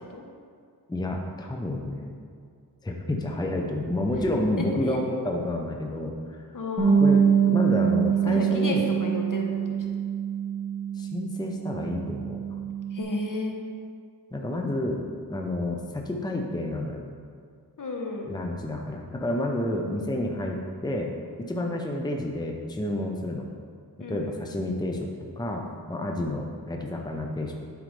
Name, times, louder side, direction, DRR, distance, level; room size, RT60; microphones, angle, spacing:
voice 1, 0.9-2.1 2.8-6.4 7.0-8.9 11.0-12.6 14.3-15.0 15.3-17.0 18.3-21.1 21.4-23.5 24.1-25.1 25.4-27.5, left 1 dB, 10° left, 1 dB, 0.7 m, -30 dB
voice 2, 6.5-7.1 8.3-9.8 12.9-13.6 17.8-18.3 24.0-24.4, left 2 dB, 55° left, 1 dB, 1.1 m, -32 dB
Bass guitar, 6.8-13.0, right 7 dB, 25° right, 1.8 m, -24 dB
11.5 x 4.8 x 3.3 m, 2.1 s
wide cardioid pair, 80°, 37 cm